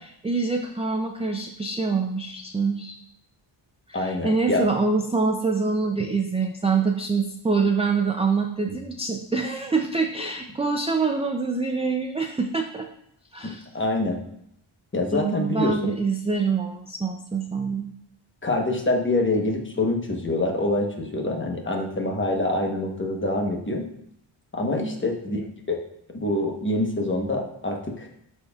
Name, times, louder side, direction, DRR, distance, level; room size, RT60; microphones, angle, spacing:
voice 1, 0.2-3.0 3.9-12.9 13.3-13.7 15.1-17.9 24.8-25.0, right 4 dB, 15° right, 3 dB, 0.3 m, -25 dB
voice 2, 3.9-4.7 8.7-8.8 13.4-14.2 14.9-15.9 18.4-23.8 24.5-25.8 26.1-28.1, left 2 dB, 25° left, 1 dB, 1.0 m, -26 dB
12.0 x 4.4 x 2.3 m, 0.74 s
wide cardioid pair, 155°, 49 cm